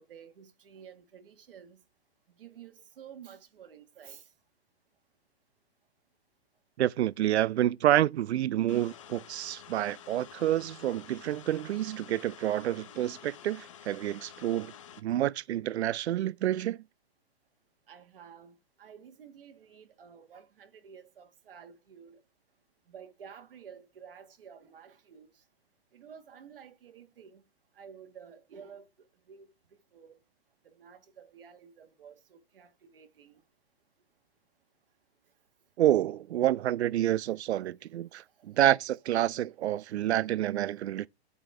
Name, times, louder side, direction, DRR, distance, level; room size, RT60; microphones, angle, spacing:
voice 1, 0.0-1.8 2.3-4.3 17.9-22.2 22.9-25.4 25.9-27.4 27.7-29.5 29.9-30.2 30.6-33.4 38.4-38.5 40.1-40.3, right 7 dB, 60° right, 1.8 m, -52 dB
voice 2, 6.8-14.7 15.0-16.8 35.8-41.1, right 12 dB, 90° right, 0.5 m, -28 dB
sound 1, 8.7-15.0, left 9 dB, 30° left, 0.7 m, -50 dB
10.5 x 5.5 x 3.3 m
hypercardioid pair, 175°, 32 cm